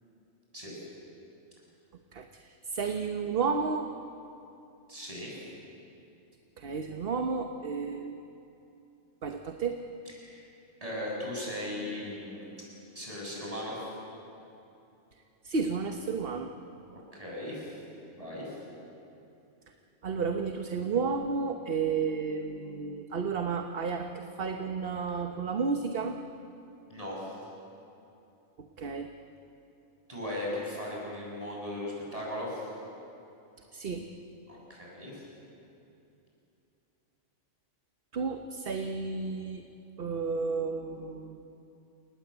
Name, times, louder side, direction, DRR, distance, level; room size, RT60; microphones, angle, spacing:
voice 1, 2.1-3.9 6.6-8.1 9.2-9.8 15.4-16.5 20.0-26.2 28.8-29.1 33.7-34.1 38.1-39.7 40.0-41.4, right 5 dB, 50° right, 5 dB, 1.3 m, -32 dB
voice 2, 4.9-5.4 10.2-10.4 10.8-12.5 12.9-13.9 16.9-17.7 18.1-18.5 26.9-27.3 30.1-32.7 34.5-35.2, left 1 dB, 30° right, -4 dB, 7.8 m, -37 dB
29.5 x 19.0 x 8.1 m, 2.8 s
omnidirectional pair, 1.3 m